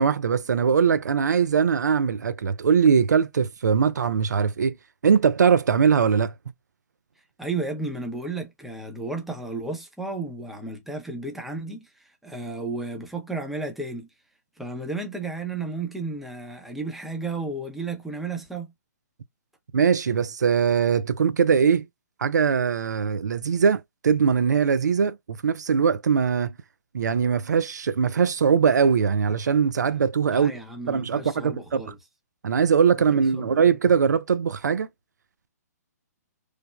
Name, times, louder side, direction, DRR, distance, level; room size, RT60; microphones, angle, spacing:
voice 1, 0.0-4.7 5.0-6.3 19.7-21.8 22.2-26.5 26.9-30.5 30.9-31.8 32.4-34.9, right 6 dB, 85° right, 0.3 m, -21 dB
voice 2, 7.4-14.1 14.6-18.7 30.3-32.0 33.1-33.5, right 3 dB, ahead, 0.6 m, -33 dB
3.2 x 2.0 x 2.2 m
hypercardioid pair, 135°, 9 cm